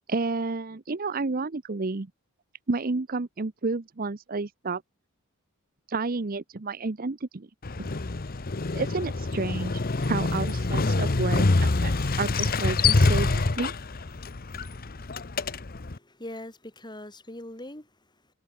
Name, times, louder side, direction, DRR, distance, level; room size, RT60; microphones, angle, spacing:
voice 1, 0.1-2.1 2.7-4.8 5.9-7.5 7.8-7.9 8.7-13.7, right 3 dB, 40° right, 0.7 m, -31 dB
Motorcycle, 7.6-16.0, left 3 dB, 45° left, 0.9 m, -26 dB
voice 2, 15.9-18.3, left 1 dB, 20° left, 5.8 m, -42 dB
head